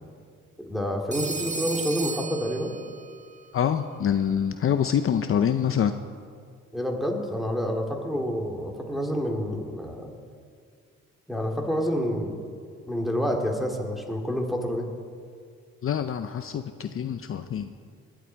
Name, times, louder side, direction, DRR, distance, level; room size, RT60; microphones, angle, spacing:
voice 1, 0.6-2.7 6.7-10.1 11.3-12.4 12.9-14.9, equal, ahead, 0 dB, 2.5 m, -28 dB
Telephone, 1.1-3.2, right 4 dB, 25° right, 0.9 m, -34 dB
voice 2, 3.5-5.9 15.8-17.7, left 8 dB, 45° left, 8 dB, 0.7 m, -25 dB
20.5 x 11.5 x 4.6 m, 2.1 s
cardioid pair, 90°, 30 cm